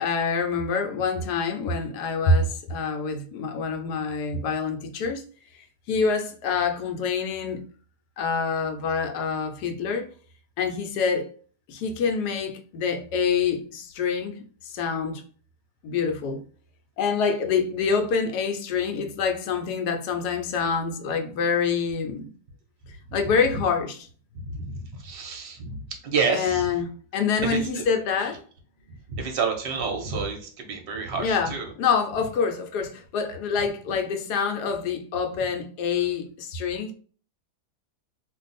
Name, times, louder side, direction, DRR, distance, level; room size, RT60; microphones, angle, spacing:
voice 1, 0.0-5.2 5.9-7.6 8.2-10.1 10.6-11.3 11.7-14.3 14.6-15.2 15.8-16.4 17.0-22.3 23.1-24.0 26.3-28.4 31.2-31.5 31.8-36.9, left 5 dB, 80° left, 1.2 m, -26 dB
voice 2, 24.4-26.7 27.4-27.8 29.1-31.7, right 5 dB, 45° right, 0.8 m, -29 dB
2.5 x 2.4 x 4.0 m
omnidirectional pair, 1.7 m